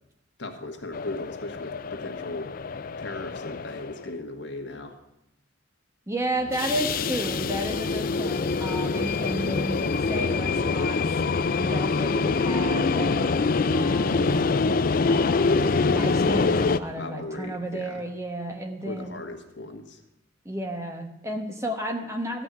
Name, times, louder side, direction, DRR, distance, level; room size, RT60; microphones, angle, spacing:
voice 1, 0.4-2.5 3.0-5.0 16.8-18.0 18.8-20.0, left 2 dB, 65° left, 4 dB, 1.7 m, -37 dB
sound 1, 0.9-4.1 6.4-16.8, left 4 dB, 50° left, 0.4 m, -25 dB
voice 2, 6.1-11.0 11.6-14.5 15.1-19.2 20.4-22.4, right 1 dB, 15° right, 4 dB, 1.2 m, -32 dB
14.0 x 5.9 x 9.4 m, 0.88 s
head